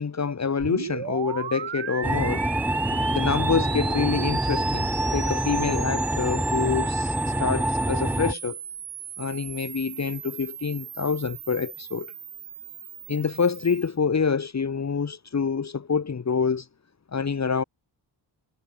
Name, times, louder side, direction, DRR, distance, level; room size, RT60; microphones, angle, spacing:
voice 1, 0.0-2.4 2.9-8.6 9.2-12.1 13.1-16.7 17.1-17.6, left 5 dB, 40° left, 1.4 m, -27 dB
sound 1, 0.6-13.9, right 9 dB, 80° right, 2.3 m, -36 dB
sound 2, 2.0-8.3, right 1 dB, 5° right, 1.1 m, -26 dB
wide cardioid pair, 115°, 43 cm